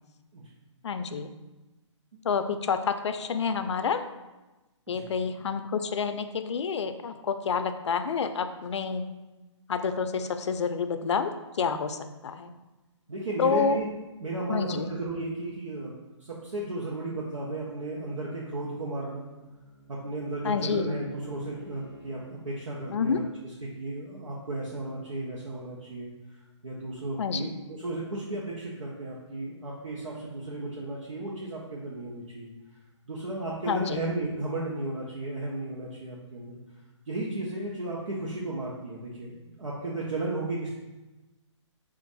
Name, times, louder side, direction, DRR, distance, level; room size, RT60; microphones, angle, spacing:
voice 1, 0.8-1.3 2.2-4.0 4.9-9.0 9.7-12.5 13.4-13.8 14.5-14.9 20.4-20.8 22.9-23.2 27.2-27.5 33.7-34.0, left 6 dB, 65° left, 9 dB, 0.4 m, -28 dB
voice 2, 13.1-13.9 14.2-15.9 16.2-19.3 19.9-23.2 23.6-26.1 26.6-32.5 33.1-36.6 37.1-40.7, right 2 dB, 85° right, -5 dB, 0.9 m, -34 dB
Bowed string instrument, 18.6-22.4, right 1 dB, ahead, 1.2 m, -52 dB
4.4 x 2.5 x 4.0 m, 1.1 s
hypercardioid pair, 155°, 16 cm